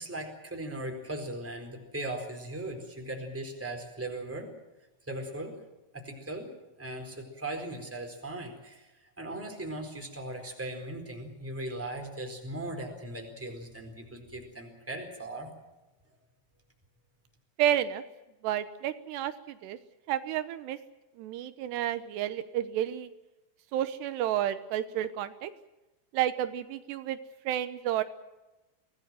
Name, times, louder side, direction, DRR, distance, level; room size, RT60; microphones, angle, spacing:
voice 1, 0.0-4.5 5.1-5.5 5.9-6.5 6.8-15.5, right 1 dB, 5° right, 2 dB, 3.8 m, -38 dB
voice 2, 17.6-18.0 18.4-19.8 20.1-20.8 21.2-23.1 23.7-25.5 26.1-27.2 27.5-28.0, right 11 dB, 85° right, 11 dB, 3.1 m, -31 dB
24.5 x 18.0 x 7.7 m, 1.1 s
omnidirectional pair, 4.9 m